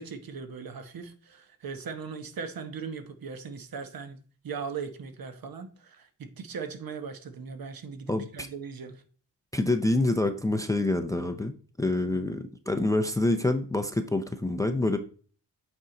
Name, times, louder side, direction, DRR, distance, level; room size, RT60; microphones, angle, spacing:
voice 1, 0.0-4.2 4.4-9.0, right 5 dB, 55° right, 1.1 m, -39 dB
voice 2, 8.1-8.5 9.5-11.5 11.8-15.0, left 2 dB, 10° left, 0.6 m, -26 dB
8.4 x 4.5 x 3.8 m
cardioid pair, 110°, 42 cm